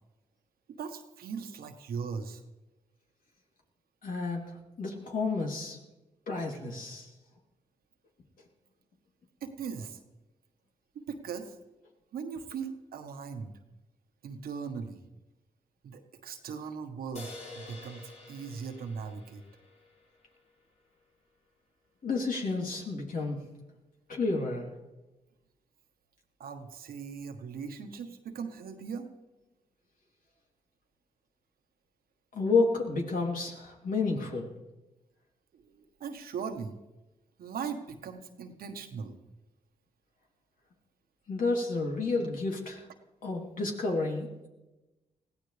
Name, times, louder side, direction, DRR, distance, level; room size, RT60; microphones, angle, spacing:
voice 1, 0.8-2.4 9.4-10.0 10.9-11.6 12.1-13.5 14.2-15.0 15.8-19.4 26.4-29.1 35.5-36.8 37.4-39.2, right 6 dB, 85° right, 7 dB, 1.4 m, -39 dB
voice 2, 4.0-5.8 6.3-7.1 22.0-23.4 24.1-24.7 32.3-34.5 41.3-42.9 43.2-44.5, left 3 dB, 65° left, -1 dB, 3.2 m, -30 dB
sound 1, 17.2-20.6, left 2 dB, 45° left, 3.8 m, -48 dB
20.5 x 15.5 x 3.4 m, 1.0 s
supercardioid pair, 50°, 15 cm